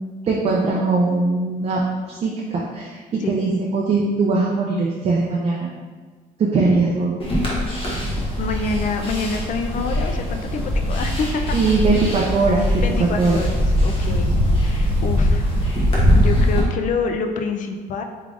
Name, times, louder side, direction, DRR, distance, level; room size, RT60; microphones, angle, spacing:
voice 1, 0.2-1.8 2.1-5.7 6.4-7.1 11.5-13.4, right 3 dB, 40° right, -3 dB, 0.5 m, -20 dB
sound 1, 7.2-16.6, equal, 35° left, 1.1 m, -21 dB
voice 2, 8.4-11.6 12.8-14.3 14.6-15.7 16.2-18.0, left 4 dB, 50° left, 5 dB, 0.4 m, -27 dB
3.6 x 3.3 x 2.5 m, 1.5 s
cardioid pair, 110°, 17 cm